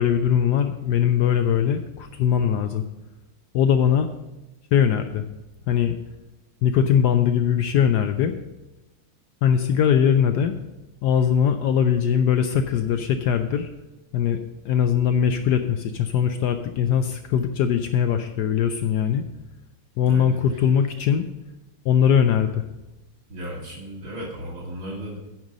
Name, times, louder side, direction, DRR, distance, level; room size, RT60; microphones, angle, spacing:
voice 1, 0.0-2.8 3.5-4.1 4.7-5.2 5.7-6.0 6.6-8.3 9.4-10.6 11.0-13.7 14.1-19.2 20.0-21.3 21.8-22.6, left 8 dB, 80° left, 8 dB, 0.9 m, -21 dB
voice 2, 20.1-20.4 23.3-25.2, equal, 75° right, -7 dB, 2.7 m, -35 dB
8.9 x 5.3 x 6.3 m, 1.0 s
omnidirectional pair, 2.3 m